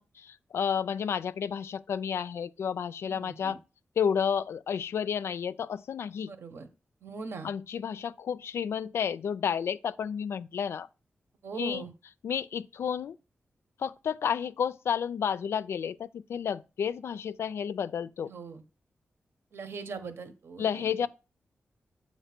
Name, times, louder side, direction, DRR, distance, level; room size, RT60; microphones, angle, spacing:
voice 1, 0.0-3.6 4.0-6.3 7.4-10.9 11.6-11.8 12.2-13.2 13.8-18.3 20.6-21.1, left 7 dB, 80° left, 0.3 m, -31 dB
voice 2, 3.1-3.6 6.2-6.7 7.0-7.5 11.4-11.9 18.3-18.6 19.5-20.9, right 4 dB, 70° right, 1.0 m, -40 dB
7.9 x 2.9 x 5.9 m
wide cardioid pair, 145°, 4 cm